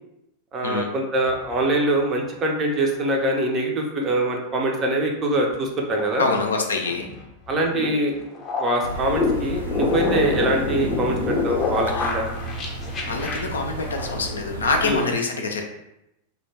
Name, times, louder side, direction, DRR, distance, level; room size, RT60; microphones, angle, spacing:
voice 1, 0.5-6.3 7.5-8.2 8.6-12.3 14.8-15.0, right 1 dB, 25° right, 1 dB, 0.5 m, -23 dB
sound 1, 1.3-1.6 5.5-14.4, left 3 dB, 25° left, 0.6 m, -27 dB
voice 2, 6.2-7.1 11.9-12.1 13.1-15.6, left 3 dB, 70° left, 3 dB, 0.4 m, -25 dB
sound 2, 8.8-15.0, equal, 85° right, 0.6 m, -33 dB
2.2 x 2.1 x 3.2 m, 0.85 s
figure-of-eight pair, 90°, 0 cm